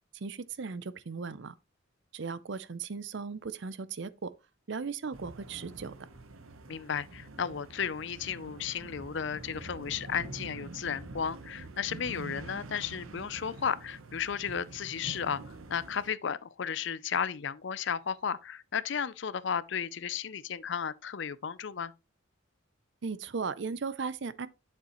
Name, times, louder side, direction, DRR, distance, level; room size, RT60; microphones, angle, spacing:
voice 1, 0.1-1.6 2.1-4.3 4.7-6.0 23.0-24.5, right 5 dB, 60° right, 0.5 m, -37 dB
sound 1, 5.1-16.1, right 2 dB, 80° right, 1.0 m, -46 dB
voice 2, 6.7-21.9, left 7 dB, 55° left, 0.5 m, -34 dB
8.1 x 6.9 x 3.0 m
head